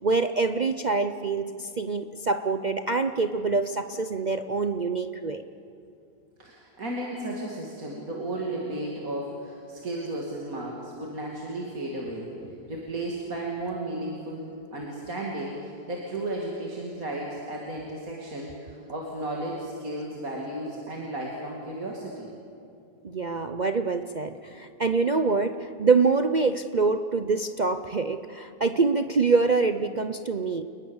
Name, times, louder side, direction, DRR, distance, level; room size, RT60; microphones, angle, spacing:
voice 1, 0.0-5.4 23.0-30.6, right 4 dB, 70° right, 8 dB, 0.4 m, -25 dB
voice 2, 6.4-22.3, right 1 dB, 55° right, -2 dB, 3.0 m, -34 dB
29.0 x 20.0 x 7.2 m, 2.6 s
omnidirectional pair, 1.8 m